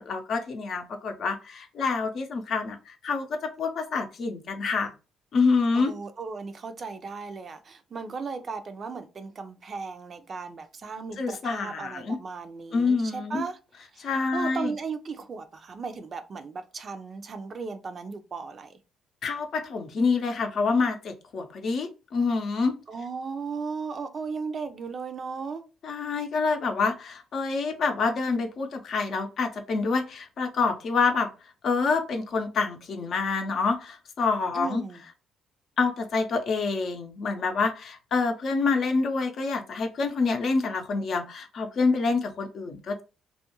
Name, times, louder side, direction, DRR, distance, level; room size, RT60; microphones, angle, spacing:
voice 1, 0.0-4.9 5.3-5.9 11.2-12.2 12.7-13.4 14.0-14.7 19.2-22.7 25.8-31.3 31.6-34.8 35.8-43.0, left 4 dB, 60° left, 0.6 m, -27 dB
voice 2, 5.7-13.6 13.9-18.8 22.9-25.6 34.5-35.0, right 5 dB, 50° right, 0.5 m, -36 dB
2.3 x 2.2 x 2.9 m
hypercardioid pair, 50°, 0 cm